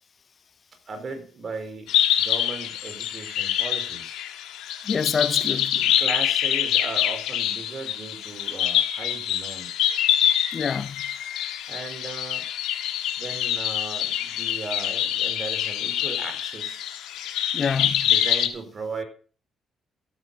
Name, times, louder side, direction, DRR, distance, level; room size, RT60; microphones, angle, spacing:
voice 1, 0.9-4.2 6.0-9.8 11.7-12.5 13.2-16.8 18.0-19.0, right 4 dB, 45° right, 4.4 m, -37 dB
sound 1, 1.9-18.5, left 11 dB, 90° left, 1.6 m, -25 dB
voice 2, 4.8-5.9 10.5-11.0 17.5-18.1, left 6 dB, 45° left, 0.5 m, -27 dB
14.5 x 9.4 x 5.5 m
cardioid pair, 90°, 0 cm